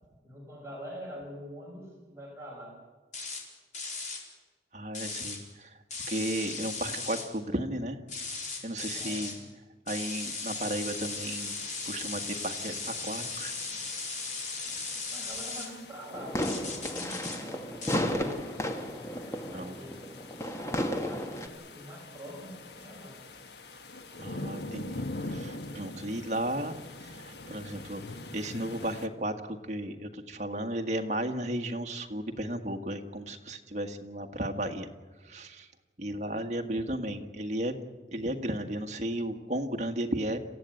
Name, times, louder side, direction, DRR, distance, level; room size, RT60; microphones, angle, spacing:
voice 1, 0.2-2.8 8.9-9.4 15.1-18.8 19.5-20.2 20.6-23.5, equal, 15° right, -2 dB, 5.4 m, -45 dB
sound 1, 3.1-3.4 3.7-4.2 4.9-5.4 5.9-7.2 8.1-9.4 9.9-15.7 16.4-17.4 17.8-18.0, left 4 dB, 45° left, 4.4 m, -37 dB
voice 2, 4.7-5.8 6.1-8.0 8.6-9.4 9.9-11.5 11.9-13.5 19.5-19.8 24.2-26.7 27.0-28.0 28.3-34.9 35.2-35.7 36.0-37.8 38.1-40.4, right 1 dB, 40° right, 5 dB, 1.7 m, -34 dB
sound 2, 10.2-29.1, left 2 dB, 70° left, 1.5 m, -45 dB
sound 3, 16.1-21.5, equal, 15° left, 1.6 m, -33 dB
27.5 x 15.5 x 9.1 m, 1.4 s
head